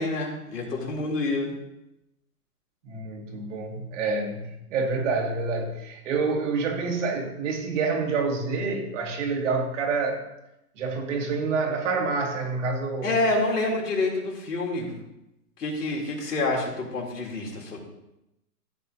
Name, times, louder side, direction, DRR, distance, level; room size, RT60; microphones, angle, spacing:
voice 1, 0.0-1.5 13.0-14.9 15.6-17.8, left 2 dB, 85° left, 0 dB, 3.6 m, -27 dB
voice 2, 2.8-10.2 10.8-13.2, right 4 dB, 50° right, 1 dB, 2.4 m, -27 dB
14.5 x 8.8 x 2.9 m, 0.88 s
hypercardioid pair, 145°, 46 cm